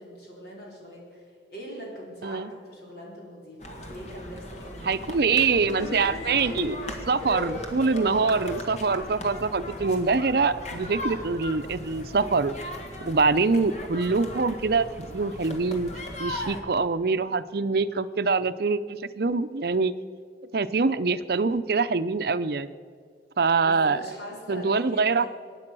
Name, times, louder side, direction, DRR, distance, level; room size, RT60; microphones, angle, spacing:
voice 1, 0.0-5.6 23.6-25.3, equal, 60° left, -3 dB, 4.7 m, -42 dB
sound 1, 3.6-16.6, left 1 dB, 40° left, 1.8 m, -38 dB
voice 2, 4.9-6.8 7.1-12.5 13.0-14.9 15.1-15.9 16.2-19.9 20.5-22.7 23.4-24.0 24.5-25.3, right 4 dB, 60° right, 13 dB, 0.6 m, -24 dB
sound 2, 5.6-10.2, left 1 dB, 80° left, 3.0 m, -38 dB
23.5 x 9.9 x 6.2 m, 2.1 s
head